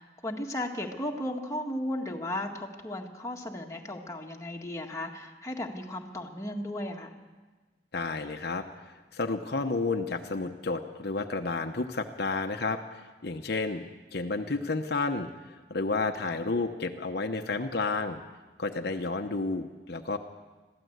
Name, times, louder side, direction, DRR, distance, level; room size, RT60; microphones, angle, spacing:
voice 1, 0.0-7.2 16.3-16.4, left 1 dB, 20° left, 1 dB, 1.8 m, -35 dB
voice 2, 7.9-8.7 9.1-18.2 18.6-20.2, left 3 dB, 65° left, 5 dB, 1.0 m, -31 dB
22.0 x 15.0 x 8.1 m, 1.3 s
head